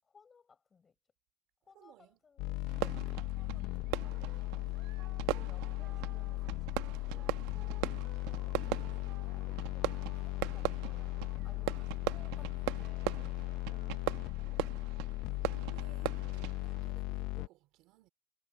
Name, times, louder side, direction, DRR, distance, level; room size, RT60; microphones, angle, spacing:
voice 1, 0.0-1.0 1.6-4.9 5.3-8.7 9.1-15.1, left 5 dB, 15° left, 7.0 m, -63 dB
voice 2, 1.7-2.2 2.6-2.8 13.7-14.4 15.4-18.1, right 17 dB, 50° right, 4.1 m, -61 dB
sound 1, 2.4-17.5, left 18 dB, 55° left, 0.8 m, -37 dB
Fireworks, 2.7-16.9, right 19 dB, 75° right, 1.3 m, -40 dB
sound 2, 4.0-11.9, right 11 dB, 35° right, 5.9 m, -59 dB
cardioid pair, 175°, 0 cm